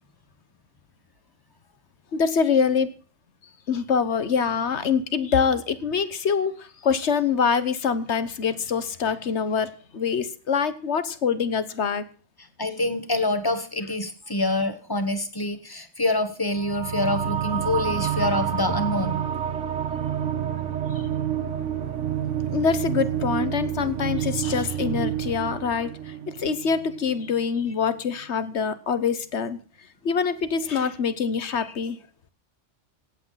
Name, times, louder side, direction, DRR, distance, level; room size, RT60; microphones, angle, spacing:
voice 1, 2.1-2.9 3.7-12.0 22.5-29.6 30.0-32.0, left 6 dB, 70° left, 13 dB, 1.4 m, -25 dB
voice 2, 12.6-19.2, left 2 dB, 20° left, 9 dB, 1.5 m, -26 dB
sound 1, 16.5-27.4, right 9 dB, 80° right, 1.4 m, -28 dB
17.0 x 8.6 x 5.7 m, 0.38 s
omnidirectional pair, 1.2 m